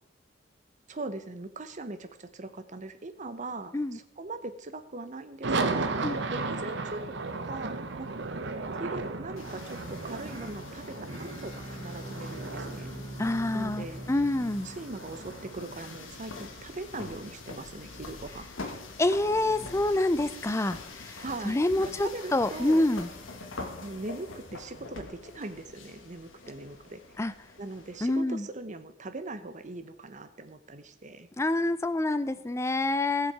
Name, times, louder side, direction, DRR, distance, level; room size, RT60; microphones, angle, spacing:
voice 1, 0.9-8.2 8.8-12.9 13.5-14.1 14.6-18.5 21.2-22.9 23.8-27.3 27.6-31.3, right 2 dB, 40° right, 10 dB, 0.8 m, -41 dB
sound 1, 5.4-17.6, right 3 dB, 65° right, 0.9 m, -36 dB
sound 2, 9.4-28.2, left 3 dB, 90° left, 1.4 m, -45 dB
sound 3, 9.9-16.0, right 1 dB, 90° right, 2.9 m, -43 dB
voice 2, 13.2-14.7 19.0-23.1 27.2-27.3 28.0-28.5 31.4-33.3, left 2 dB, 15° left, 13 dB, 0.5 m, -27 dB
15.0 x 7.1 x 4.8 m, 0.80 s
head